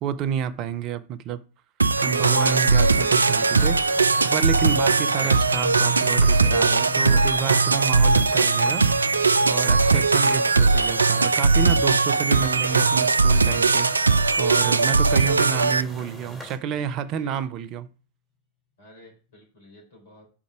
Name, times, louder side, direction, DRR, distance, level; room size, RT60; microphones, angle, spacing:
voice 1, 0.0-1.4 2.0-4.0 4.2-8.8 9.4-17.9, right 8 dB, 35° right, 0.6 m, -29 dB
sound 1, 1.8-15.8, right 4 dB, 75° right, 0.3 m, -19 dB
sound 2, 2.0-16.6, left 1 dB, 5° right, 2.3 m, -41 dB
sound 3, 5.4-15.4, left 8 dB, 15° left, 3.5 m, -41 dB
voice 2, 15.7-17.5 18.8-20.2, left 1 dB, 60° left, 4.0 m, -52 dB
5.2 x 4.8 x 5.8 m
figure-of-eight pair, 90°, 0 cm